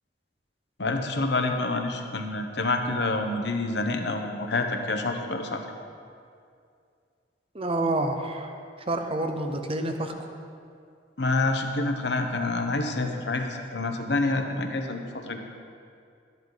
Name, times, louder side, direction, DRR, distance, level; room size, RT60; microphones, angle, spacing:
voice 1, 0.8-5.6 11.2-15.4, left 2 dB, 70° left, 4 dB, 1.0 m, -27 dB
voice 2, 7.5-8.5 8.9-10.1, right 2 dB, 30° right, 5 dB, 0.9 m, -28 dB
12.5 x 11.0 x 4.0 m, 2.3 s
head